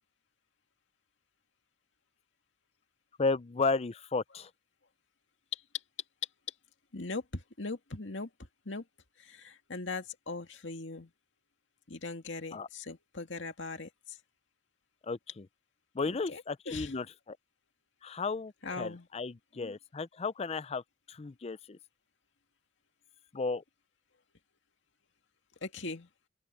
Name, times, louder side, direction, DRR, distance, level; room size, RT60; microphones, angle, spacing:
voice 1, 3.2-4.5 12.5-12.7 15.0-15.5 15.9-17.4 18.0-20.8 21.1-21.8 23.3-23.6, left 4 dB, 35° left, 0.5 m, -34 dB
voice 2, 6.9-8.8 9.2-11.1 11.9-14.2 16.1-17.0 18.6-19.1 19.6-19.7 25.6-26.1, left 3 dB, 70° left, 2.3 m, -40 dB
open air
head